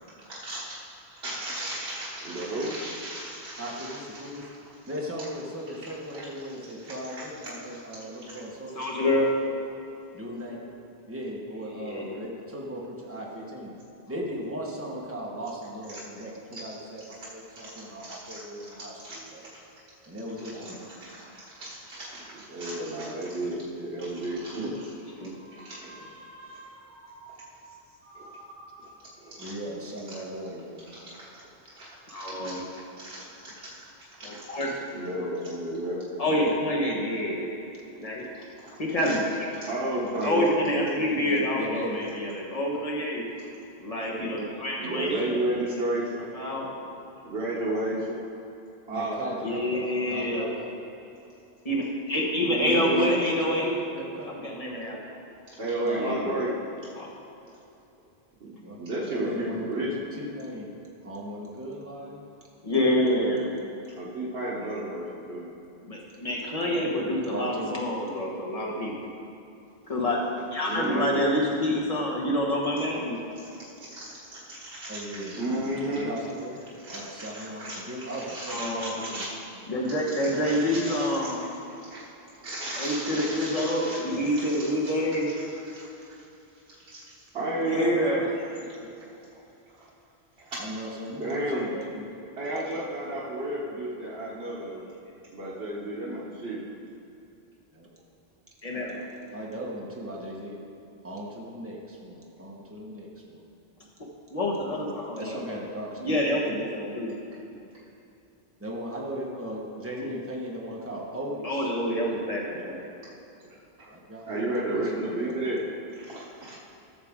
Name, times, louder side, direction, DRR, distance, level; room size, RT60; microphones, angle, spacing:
voice 1, 0.3-0.8 1.2-4.2 6.1-6.2 6.8-7.2 7.6-7.7 8.3-8.4 17.5-17.7 18.0-18.4 19.0-19.2 20.5-24.9 25.6-26.1 29.3-29.5 30.9-31.4 31.7-33.9 34.2-34.4 34.9-36.0 38.6-38.8 39.0-39.1 39.6-40.6 44.8-46.3 47.2-48.2 48.9-49.7 52.3-53.1 55.6-56.5 58.4-58.5 58.8-60.1 64.0-65.5 70.6-71.3 73.9-76.1 76.8-79.4 80.1-81.5 81.9-82.1 82.4-84.9 85.3-85.9 86.9-88.2 90.4-90.6 91.2-91.8 92.4-94.8 95.3-96.6 107.5-107.6 113.8-113.9 114.3-115.6 116.0-116.6, right 1 dB, 75° right, -7 dB, 1.5 m, -33 dB
voice 2, 3.6-4.5 4.9-9.6 10.1-10.8 11.1-13.7 14.1-19.4 20.0-20.8 25.3-30.8 41.2-42.0 48.9-50.7 52.7-54.3 55.8-56.2 58.6-58.8 59.1-59.8 60.1-60.7 61.0-62.2 67.2-67.8 70.8-71.3 74.9-75.4 75.9-76.5 76.9-79.2 87.3-87.8 90.6-91.8 97.7-97.9 99.3-100.6 101.0-103.4 105.1-106.2 108.6-111.7 113.9-114.9 115.3-115.5, equal, 15° right, -3 dB, 1.3 m, -38 dB
voice 3, 8.7-9.3 11.8-12.0 25.2-25.3 32.1-32.6 34.2-34.7 36.2-37.5 38.0-38.4 38.8-39.5 40.2-43.2 43.8-45.3 46.3-46.7 49.4-50.5 51.6-53.8 54.2-55.0 56.0-56.4 57.0-57.1 62.6-63.5 65.8-69.1 69.9-70.2 70.5-73.2 78.5-79.0 79.7-81.4 82.8-85.3 87.7-88.2 98.6-99.0 104.3-105.4 106.0-107.1 111.4-112.8, left 1 dB, 35° left, -2 dB, 1.5 m, -27 dB
14.5 x 6.7 x 3.7 m, 2.8 s
omnidirectional pair, 1.1 m